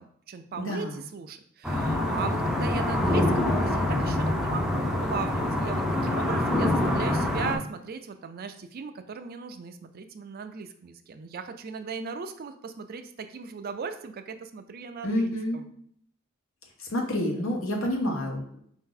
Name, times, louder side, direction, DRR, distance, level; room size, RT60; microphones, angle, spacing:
voice 1, 0.0-15.7, right 5 dB, 50° right, 8 dB, 0.4 m, -38 dB
voice 2, 0.6-1.0 15.0-15.6 16.8-18.6, left 1 dB, 70° left, 2 dB, 1.0 m, -28 dB
sound 1, 1.6-7.6, left 1 dB, 5° right, 0.5 m, -25 dB
5.0 x 2.7 x 3.9 m, 0.64 s
head